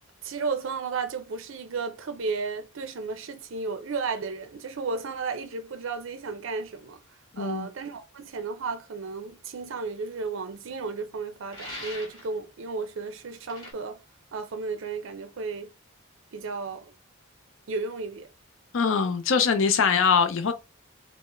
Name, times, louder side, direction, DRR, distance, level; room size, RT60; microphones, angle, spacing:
voice 1, 0.2-7.0 7.4-14.0 14.3-15.7 16.3-16.9 17.7-18.3, right 4 dB, 60° right, 0.5 m, -33 dB
voice 2, 7.3-7.7 18.7-20.5, left 6 dB, 60° left, 0.5 m, -22 dB
sound 1, 11.5-12.3 13.5-13.7, left 1 dB, 20° left, 1.4 m, -40 dB
4.4 x 2.0 x 3.1 m
head